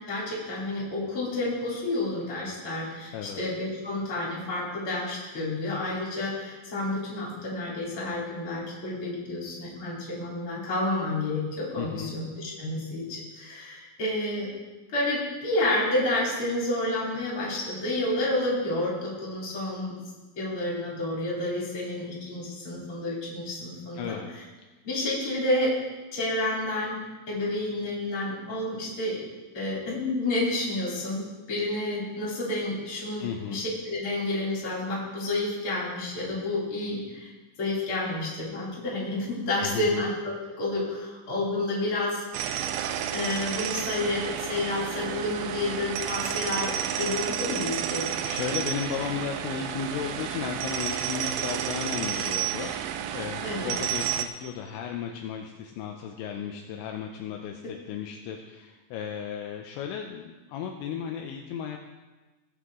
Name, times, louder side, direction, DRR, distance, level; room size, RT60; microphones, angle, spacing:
voice 1, 0.1-14.5 14.9-20.0 20.3-24.2 24.8-25.8 26.1-27.0 27.3-29.2 29.5-37.3 37.6-42.2 43.1-48.1 53.4-53.7, left 2 dB, 30° left, -5 dB, 3.5 m, -30 dB
voice 2, 3.1-3.4 11.8-12.1 23.9-24.4 33.2-33.7 39.6-40.0 48.2-61.8, left 8 dB, 80° left, 3 dB, 2.8 m, -35 dB
sound 1, 42.3-54.3, right 10 dB, 85° right, 2.5 m, -31 dB
17.5 x 7.9 x 3.7 m, 1.2 s
omnidirectional pair, 5.6 m